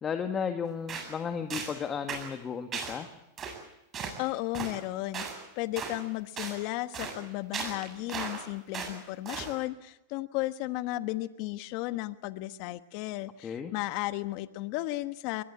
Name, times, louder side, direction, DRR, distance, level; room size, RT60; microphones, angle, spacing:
voice 1, 0.0-3.1 13.4-13.7, left 7 dB, 25° left, 6 dB, 1.9 m, -34 dB
sound 1, 0.9-1.1 1.5-1.8 2.1-2.3 2.7-3.0 3.4-3.6 3.9-4.2 4.5-4.8 5.1-5.4 5.8-6.0 6.4-6.6 6.9-7.2 7.5-8.4 8.7-9.0 9.3-9.5, right 6 dB, 30° right, 7.9 m, -36 dB
voice 2, 4.2-15.4, left 17 dB, 55° left, 12 dB, 1.2 m, -34 dB
23.0 x 21.0 x 8.6 m, 0.89 s
hypercardioid pair, 110°, 0 cm